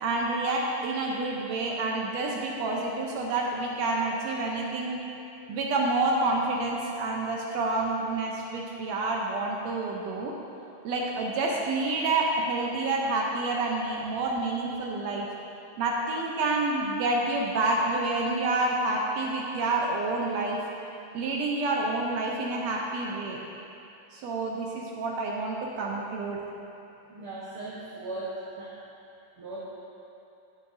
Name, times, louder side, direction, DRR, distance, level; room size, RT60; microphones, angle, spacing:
voice 1, 0.0-5.0 5.5-10.3 10.8-15.3 15.8-20.6 21.1-23.4 24.1-26.4, right 2 dB, 80° right, -1 dB, 1.5 m, -28 dB
voice 2, 27.1-28.8 29.4-29.6, right 2 dB, 65° right, -7 dB, 1.3 m, -38 dB
14.0 x 8.5 x 2.7 m, 2.8 s
omnidirectional pair, 3.9 m